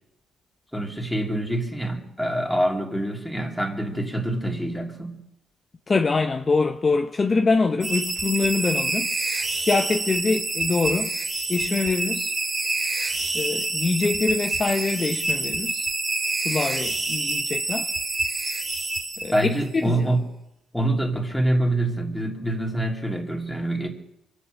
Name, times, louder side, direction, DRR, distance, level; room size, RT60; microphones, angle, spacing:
voice 1, 0.7-5.2 19.3-20.2 20.7-23.9, right 1 dB, ahead, 3.1 m, -25 dB
voice 2, 5.9-9.1 9.6-11.2 11.5-12.3 13.3-15.9 16.3-17.9 19.2-20.1, left 4 dB, 30° left, 0.8 m, -24 dB
sound 1, 7.8-19.7, right 2 dB, 30° right, 3.4 m, -27 dB
24.5 x 8.6 x 6.7 m
cardioid pair, 90°, 0 cm